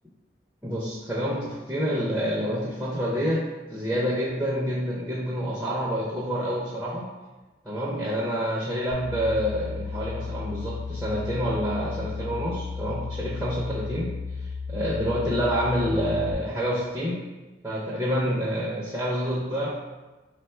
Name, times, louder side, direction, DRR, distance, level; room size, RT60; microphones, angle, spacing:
voice 1, 0.6-7.1 7.6-14.1 14.4-17.2 17.6-19.7, equal, 10° right, -6 dB, 0.5 m, -28 dB
sound 1, 8.9-16.3, left 4 dB, 45° left, 0.4 m, -34 dB
3.4 x 2.2 x 4.3 m, 1.2 s
head